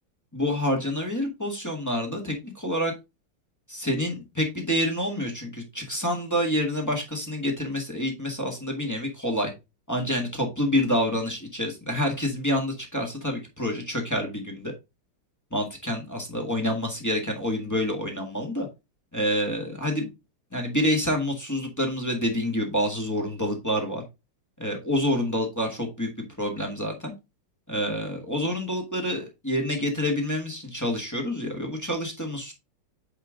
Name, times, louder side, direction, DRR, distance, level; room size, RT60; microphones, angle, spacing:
voice 1, 0.3-2.9 3.7-9.5 9.9-14.7 15.5-18.7 19.1-20.1 20.5-24.0 24.6-26.1 26.4-27.1 27.7-32.5, equal, 10° left, 0 dB, 1.0 m, -27 dB
8.7 x 3.6 x 3.6 m, 0.24 s
omnidirectional pair, 2.4 m